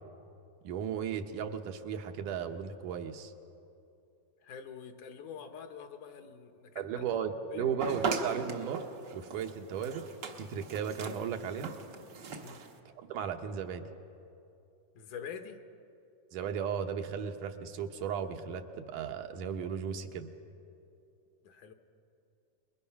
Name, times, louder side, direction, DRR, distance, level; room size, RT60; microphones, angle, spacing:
voice 1, 0.6-3.3 6.8-8.8 9.1-10.0 10.4-11.8 13.0-13.9 16.3-20.3, right 7 dB, 80° right, 6 dB, 2.5 m, -35 dB
voice 2, 4.4-7.0 7.5-8.0 12.4-12.6 14.9-15.6 21.4-21.7, left 7 dB, 75° left, 6 dB, 2.6 m, -45 dB
sound 1, 7.8-12.8, right 5 dB, 60° right, 1.0 m, -39 dB
28.5 x 21.5 x 5.9 m, 2.7 s
omnidirectional pair, 3.7 m